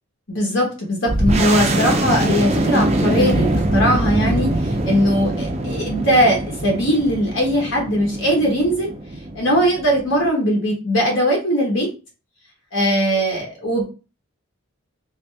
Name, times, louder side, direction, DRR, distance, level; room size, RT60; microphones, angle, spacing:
voice 1, 0.3-8.9 9.3-11.9 12.7-13.9, equal, 60° left, -1 dB, 1.1 m, -19 dB
sound 1, 1.1-10.3, right 1 dB, 30° right, 0.4 m, -23 dB
3.1 x 2.8 x 3.3 m, 0.33 s
head